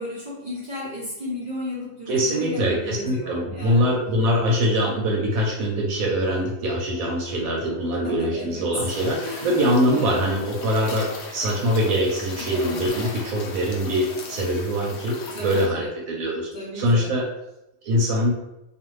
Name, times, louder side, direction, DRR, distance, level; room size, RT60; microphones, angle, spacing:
voice 1, 0.0-3.9 8.0-8.7 9.2-9.6 9.9-10.4 15.3-15.9 16.5-17.1, left 1 dB, 50° right, -7 dB, 0.7 m, -34 dB
voice 2, 2.1-16.5 16.7-17.2 17.8-18.3, equal, 70° right, -1 dB, 1.0 m, -23 dB
sound 1, 8.9-15.7, left 3 dB, 70° left, 0.6 m, -37 dB
2.5 x 2.4 x 3.0 m, 0.89 s
omnidirectional pair, 1.6 m